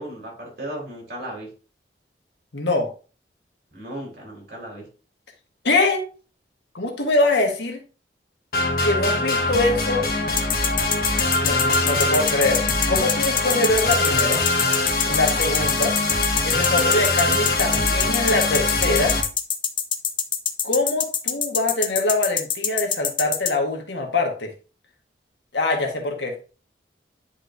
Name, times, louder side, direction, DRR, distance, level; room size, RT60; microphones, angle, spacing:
voice 1, 0.0-1.5 3.7-4.8, right 1 dB, 55° right, -3 dB, 3.8 m, -35 dB
voice 2, 2.5-2.9 5.6-6.0 6.7-7.8 8.8-10.1 11.4-14.4 15.0-15.9 16.4-19.2 20.6-24.5 25.5-26.3, left 2 dB, 80° left, 3 dB, 1.6 m, -23 dB
sound 1, 8.5-19.2, left 2 dB, 55° left, 1.3 m, -23 dB
sound 2, 10.4-23.5, left 8 dB, 25° left, 0.5 m, -24 dB
10.0 x 4.4 x 2.7 m, 0.36 s
head